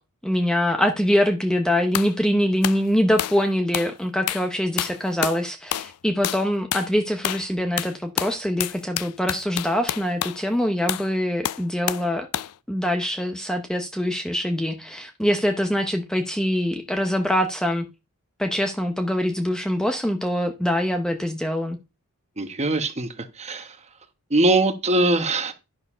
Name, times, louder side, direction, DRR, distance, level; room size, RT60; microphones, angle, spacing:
voice 1, 0.2-12.3 12.7-17.9 18.4-21.8, equal, 5° left, 0.8 m, -24 dB
sound 1, 1.9-2.1 2.6-2.8 3.2-3.4 3.7-3.9 4.3-4.5 4.8-5.4 5.7-5.9 6.2-6.4 6.7-6.9 7.2-7.5 7.8-10.4 10.9-11.1 11.4-12.1 12.3-12.5, left 12 dB, 90° left, 0.4 m, -28 dB
voice 2, 22.4-23.8 24.3-25.5, right 2 dB, 30° right, 1.1 m, -22 dB
10.5 x 4.7 x 5.5 m
head